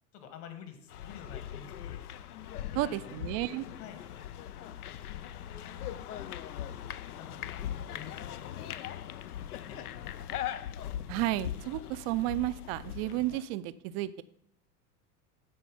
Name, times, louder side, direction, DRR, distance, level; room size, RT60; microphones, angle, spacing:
voice 1, 0.1-2.0 2.8-3.2 3.5-4.0 4.6-4.8 5.1-6.2 6.7-6.8 7.2-9.0 9.7-10.4, left 7 dB, 50° left, 7 dB, 2.1 m, -50 dB
sound 1, 0.9-13.4, left 11 dB, 70° left, 0.6 m, -40 dB
voice 2, 2.7-3.7 11.1-14.2, right 16 dB, 30° right, 15 dB, 0.4 m, -32 dB
14.0 x 4.8 x 5.5 m, 0.71 s
figure-of-eight pair, 80°, 46 cm